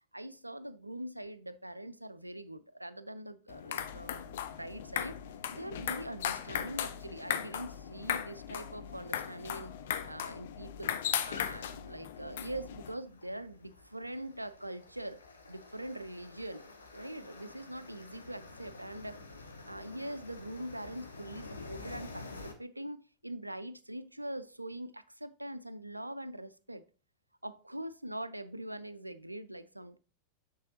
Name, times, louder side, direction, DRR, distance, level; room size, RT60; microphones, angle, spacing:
voice 1, 0.1-5.2 5.5-9.7 10.1-10.9 11.2-15.2 15.5-16.6 16.9-19.2 19.7-26.8 27.4-30.0, right 1 dB, 85° right, 0.4 m, -43 dB
sound 1, 3.5-12.9, left 9 dB, 55° left, 0.5 m, -37 dB
sound 2, 11.0-22.5, left 3 dB, 75° left, 0.8 m, -50 dB
6.8 x 6.4 x 2.6 m
figure-of-eight pair, 90°, 0 cm